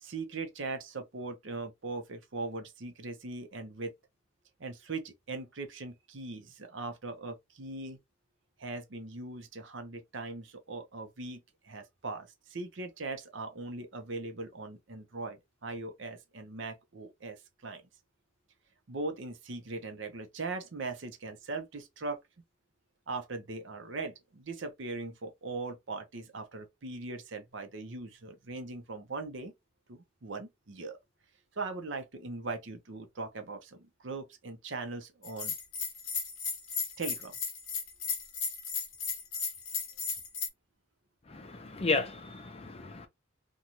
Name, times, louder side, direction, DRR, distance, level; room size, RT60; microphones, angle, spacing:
voice 1, 0.0-3.9 4.6-8.0 8.6-17.8 18.9-22.2 23.1-29.5 29.9-31.0 31.6-35.5 37.0-37.3, right 3 dB, 65° right, 0.6 m, -40 dB
Bell, 35.2-40.5, left 6 dB, 80° left, 0.8 m, -35 dB
voice 2, 41.3-43.1, left 3 dB, 30° left, 0.5 m, -33 dB
2.6 x 2.3 x 2.9 m
head